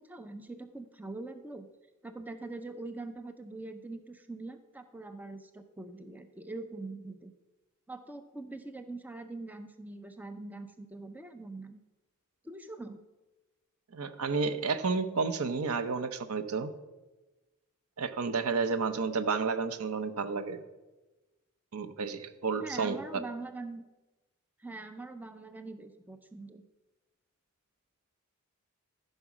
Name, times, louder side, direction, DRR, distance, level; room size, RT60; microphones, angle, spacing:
voice 1, 0.0-1.7 2.0-7.3 7.9-11.8 12.4-13.0 22.6-23.8 24.6-26.6, right 2 dB, 10° right, 9 dB, 0.5 m, -43 dB
voice 2, 13.9-16.7 18.0-20.6 21.7-23.0, right 4 dB, 80° right, 10 dB, 0.7 m, -31 dB
13.5 x 5.4 x 6.0 m, 1.1 s
head